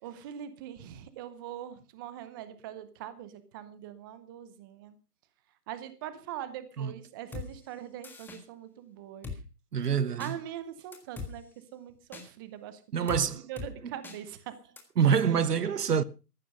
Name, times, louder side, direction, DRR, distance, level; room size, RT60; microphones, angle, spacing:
voice 1, 0.0-5.0 5.7-9.3 10.2-11.4 11.7-13.1 13.5-14.6, right 11 dB, 15° right, 0.8 m, -42 dB
Drum kit, 7.3-7.5 8.0-8.4 9.2-9.4 10.2-10.3 10.9-11.3 12.1-12.2 13.1-13.2 13.6-13.7 14.0-14.2 14.8-14.9, left 5 dB, 5° left, 1.6 m, -39 dB
voice 2, 9.7-10.4 12.9-13.5 15.0-16.0, right 7 dB, 75° right, 1.2 m, -26 dB
14.5 x 12.0 x 5.4 m
hypercardioid pair, 150°, 47 cm